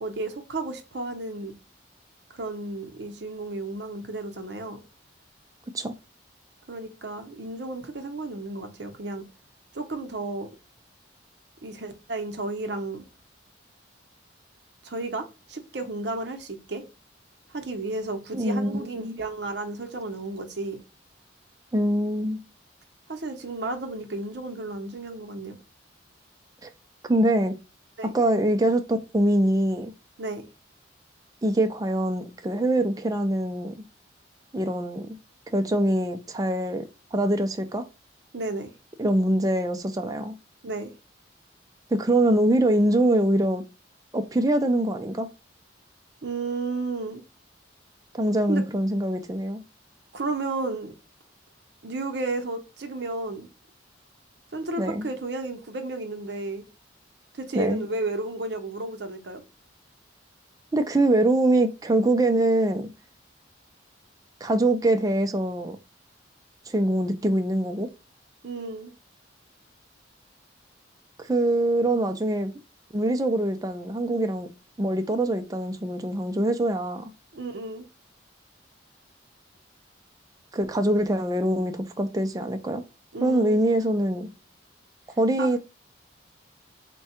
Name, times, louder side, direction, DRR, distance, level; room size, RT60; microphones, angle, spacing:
voice 1, 0.0-1.5 2.3-4.8 6.7-9.3 9.7-10.5 11.6-13.0 14.8-16.8 17.5-20.8 23.1-25.6 28.0-28.1 30.2-30.4 38.3-38.7 40.6-40.9 46.2-47.2 48.5-48.6 50.1-50.9 51.8-53.5 54.5-56.7 57.3-59.4 68.4-68.9 77.3-77.8 83.1-83.6 85.4-85.6, right 2 dB, 60° right, 0.7 m, -33 dB
voice 2, 18.3-19.2 21.7-22.4 26.6-26.7 27.1-27.5 28.1-29.9 31.4-33.7 34.5-35.1 35.5-36.9 37.1-37.8 39.0-40.3 41.9-43.6 44.1-45.3 48.1-49.6 54.8-55.1 57.5-57.8 60.7-62.9 64.4-65.8 66.7-67.9 71.2-72.5 72.9-74.5 74.8-77.1 80.5-82.8 83.2-84.3 85.2-85.6, right 1 dB, 20° right, 0.4 m, -24 dB
3.5 x 2.2 x 4.2 m
head